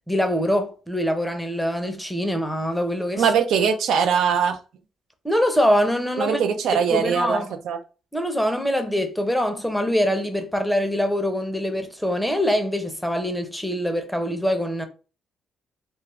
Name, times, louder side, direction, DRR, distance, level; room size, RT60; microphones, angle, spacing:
voice 1, 0.1-3.3 5.2-6.4 6.7-7.5 8.1-14.9, equal, ahead, 0.6 m, -24 dB
voice 2, 3.2-4.6 6.2-7.8, right 7 dB, 75° right, 0.4 m, -21 dB
2.4 x 2.3 x 3.1 m
cardioid pair, 90°, 0 cm